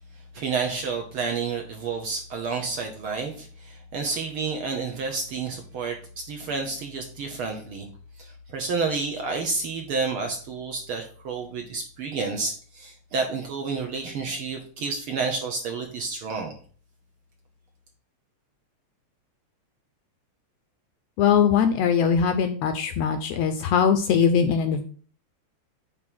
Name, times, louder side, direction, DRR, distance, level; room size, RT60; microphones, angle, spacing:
voice 1, 0.3-7.9 8.2-16.6, right 4 dB, 60° right, 2 dB, 1.5 m, -30 dB
voice 2, 21.2-24.8, left 7 dB, 75° left, 8 dB, 1.5 m, -21 dB
9.0 x 3.3 x 6.1 m, 0.43 s
omnidirectional pair, 3.3 m